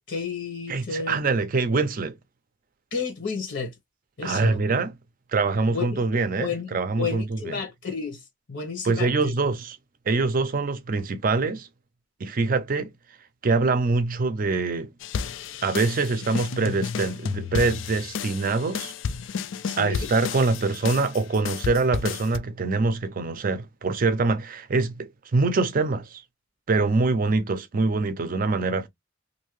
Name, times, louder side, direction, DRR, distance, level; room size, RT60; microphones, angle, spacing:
voice 1, 0.1-1.2 2.9-3.7 4.2-4.6 5.7-6.0 6.4-6.7 7.0-9.3 19.6-20.1, left 5 dB, 70° left, 1.0 m, -32 dB
voice 2, 0.7-2.2 4.2-4.9 5.3-7.5 8.8-9.8 10.1-11.7 12.2-12.9 13.4-14.9 15.6-18.9 19.8-26.2 26.7-28.9, right 3 dB, 50° right, 0.5 m, -24 dB
sound 1, 15.0-22.4, left 6 dB, 90° left, 0.3 m, -32 dB
2.7 x 2.6 x 3.0 m
head